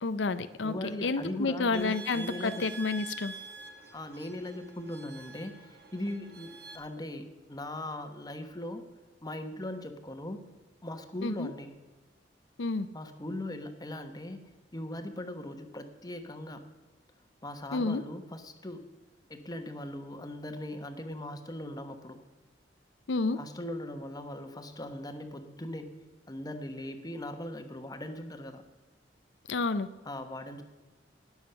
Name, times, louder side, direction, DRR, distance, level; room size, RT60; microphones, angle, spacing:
voice 1, 0.0-0.7 1.0-3.3 11.2-11.5 12.6-12.9 17.7-18.0 23.1-23.4 29.5-29.9, left 3 dB, 90° left, 12 dB, 0.6 m, -30 dB
voice 2, 0.6-2.7 3.9-8.9 9.2-10.4 10.8-11.7 12.9-16.6 17.4-18.8 19.3-22.2 23.3-25.9 26.3-28.6 30.0-30.6, left 1 dB, 20° left, 7 dB, 1.1 m, -39 dB
sound 1, 1.7-6.8, right 4 dB, 60° right, 1.5 m, -46 dB
19.0 x 7.2 x 5.7 m, 1.2 s
head